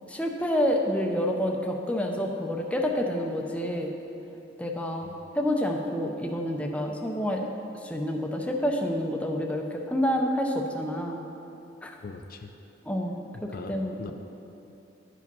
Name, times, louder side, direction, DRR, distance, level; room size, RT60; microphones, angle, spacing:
voice 1, 0.1-3.9 4.6-5.1 5.3-7.4 7.8-11.2 11.8-11.9 12.9-13.2 13.4-14.1, equal, 5° left, 1 dB, 0.6 m, -28 dB
voice 2, 12.0-12.5 13.3-14.1, left 3 dB, 50° left, 5 dB, 0.4 m, -40 dB
10.5 x 5.1 x 5.4 m, 2.8 s
head